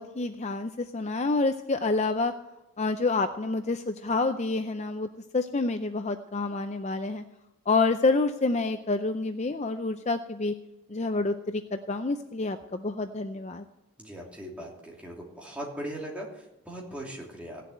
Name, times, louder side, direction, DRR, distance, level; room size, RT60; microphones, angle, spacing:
voice 1, 0.0-2.3 2.8-7.2 7.7-10.5 10.9-13.6, left 3 dB, 30° left, 8 dB, 0.5 m, -28 dB
voice 2, 14.0-16.3 16.6-17.6, right 1 dB, 5° right, -2 dB, 2.9 m, -39 dB
16.5 x 7.5 x 9.1 m, 0.95 s
head